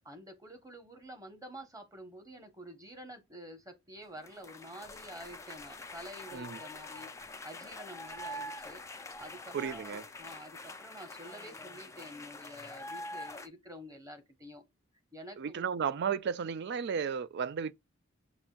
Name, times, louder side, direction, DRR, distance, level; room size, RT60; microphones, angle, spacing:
voice 1, 0.0-8.8 9.2-14.6 15.1-15.8, equal, 15° right, 1.1 m, -49 dB
sound 1, 4.2-13.5, left 2 dB, 15° left, 0.4 m, -45 dB
voice 2, 9.5-10.0 15.4-17.7, right 6 dB, 55° right, 0.4 m, -34 dB
7.1 x 2.6 x 2.4 m
head